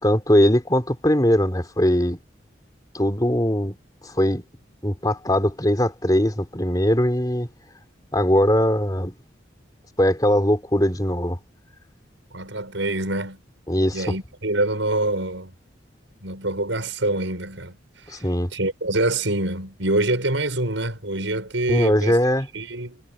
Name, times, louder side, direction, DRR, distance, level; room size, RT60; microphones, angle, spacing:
voice 1, 0.0-2.2 2.9-3.8 4.0-4.4 4.8-7.5 8.1-9.1 10.0-11.4 13.7-14.0 18.1-18.5 21.7-22.5, equal, 20° left, 3.7 m, -20 dB
voice 2, 12.3-13.4 13.9-15.5 16.2-17.8 18.0-22.2 22.5-23.0, right 2 dB, 80° right, 6.5 m, -25 dB
head